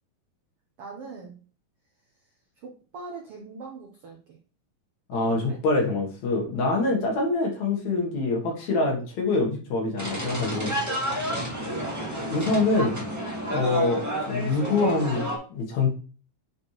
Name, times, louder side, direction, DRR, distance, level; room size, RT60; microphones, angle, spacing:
voice 1, 0.8-1.4 2.6-4.2 5.1-5.6 6.5-6.6 11.1-11.5, right 4 dB, 75° right, 1 dB, 1.3 m, -41 dB
voice 2, 5.1-10.7 12.3-13.0 13.5-15.9, left 3 dB, 60° left, 0 dB, 2.3 m, -25 dB
sound 1, 10.0-15.4, equal, 25° right, 0.3 m, -30 dB
8.3 x 4.4 x 3.1 m, 0.38 s
omnidirectional pair, 4.2 m